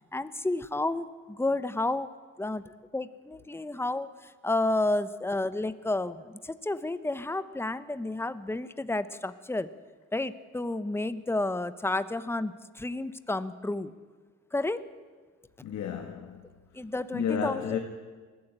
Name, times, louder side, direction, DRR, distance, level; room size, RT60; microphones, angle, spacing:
voice 1, 0.1-2.1 2.4-9.7 10.1-13.9 14.5-14.9 16.7-17.8, left 2 dB, 10° left, 1.0 m, -31 dB
voice 2, 15.6-16.5 17.1-17.8, left 7 dB, 70° left, 1.7 m, -31 dB
20.5 x 14.5 x 8.9 m
cardioid pair, 90°, 30 cm